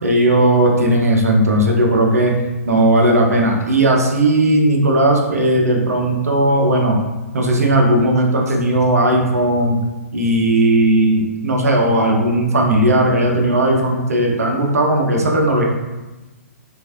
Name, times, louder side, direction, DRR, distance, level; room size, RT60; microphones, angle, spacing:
voice 1, 0.0-2.3 2.7-7.0 7.3-9.8 10.1-15.6, right 1 dB, 75° right, 0 dB, 0.6 m, -16 dB
3.1 x 2.5 x 2.4 m, 1.1 s
figure-of-eight pair, 120°, 8 cm